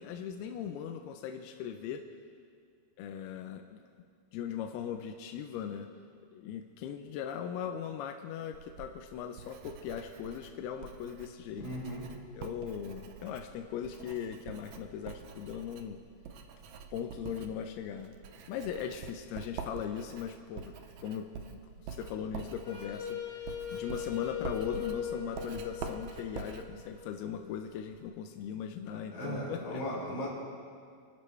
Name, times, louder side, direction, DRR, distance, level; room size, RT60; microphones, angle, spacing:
voice 1, 0.0-2.0 3.0-3.8 4.3-5.9 6.3-11.7 12.3-16.0 16.9-18.1 18.5-20.7 21.0-29.8, left 8 dB, 90° left, 6 dB, 2.6 m, -39 dB
Writing, 8.5-28.1, right 6 dB, 80° right, 1.6 m, -46 dB
voice 2, 11.5-12.1 29.1-30.3, equal, 40° left, -6 dB, 5.4 m, -37 dB
Wind instrument woodwind instrument, 22.6-27.6, left 9 dB, 75° left, 0.8 m, -40 dB
28.5 x 12.0 x 3.3 m, 2.2 s
omnidirectional pair, 4.5 m